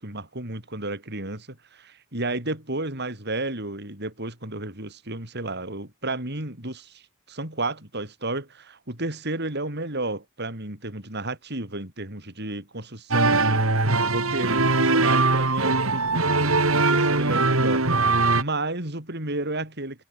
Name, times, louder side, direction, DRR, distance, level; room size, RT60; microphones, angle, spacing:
voice 1, 0.0-7.0 7.3-17.9 18.4-20.0, right 2 dB, 55° right, 6.7 m, -32 dB
sound 1, 13.1-18.4, right 3 dB, 80° right, 4.2 m, -21 dB
head